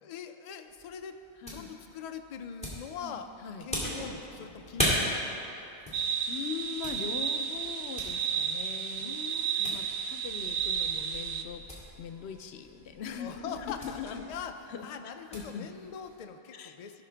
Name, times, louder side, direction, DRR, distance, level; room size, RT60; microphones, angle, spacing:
voice 1, 0.0-1.2 1.5-3.3 3.6-5.2 9.0-9.8 13.2-17.0, left 7 dB, 50° left, 7 dB, 0.5 m, -42 dB
sound 1, 0.6-16.3, equal, 5° left, 1.9 m, -39 dB
voice 2, 3.0-3.6 6.3-9.1 9.6-11.6 12.0-14.2 14.7-14.9 15.3-15.7 16.5-16.8, left 7 dB, 90° left, 8 dB, 0.9 m, -41 dB
sound 2, 3.1-14.6, equal, 80° right, 2.1 m, -52 dB
sound 3, 5.9-11.4, right 7 dB, 65° right, 0.7 m, -32 dB
15.5 x 5.7 x 3.4 m, 2.9 s
omnidirectional pair, 1.1 m